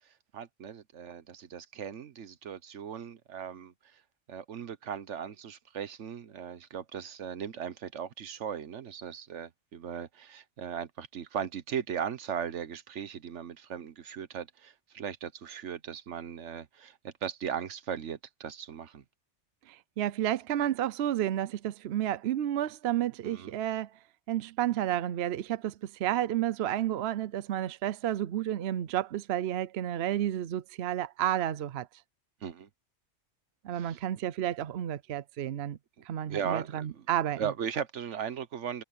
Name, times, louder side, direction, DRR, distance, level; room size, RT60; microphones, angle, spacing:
voice 1, 0.3-4.0 4.3-19.0 23.2-23.6 32.4-32.7 33.7-34.0 36.0-37.1 37.4-38.8, right 8 dB, 80° right, 1.3 m, -38 dB
voice 2, 19.7-23.9 24.3-31.9 33.6-35.8 36.1-37.5, right 11 dB, 65° right, 0.8 m, -31 dB
omnidirectional pair, 1.2 m